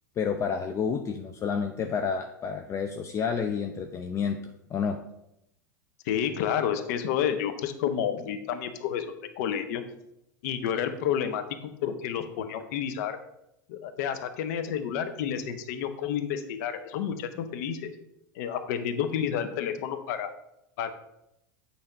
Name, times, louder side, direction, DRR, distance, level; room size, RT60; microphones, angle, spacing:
voice 1, 0.2-4.4 4.7-5.0, left 6 dB, 25° left, 5 dB, 0.5 m, -29 dB
voice 2, 6.0-9.1 9.4-9.8 10.4-11.4 11.8-13.2 13.7-17.9 18.3-20.3 20.8-20.9, left 8 dB, 55° left, 8 dB, 0.8 m, -30 dB
8.6 x 3.4 x 5.2 m, 0.82 s
figure-of-eight pair, 85°, 11 cm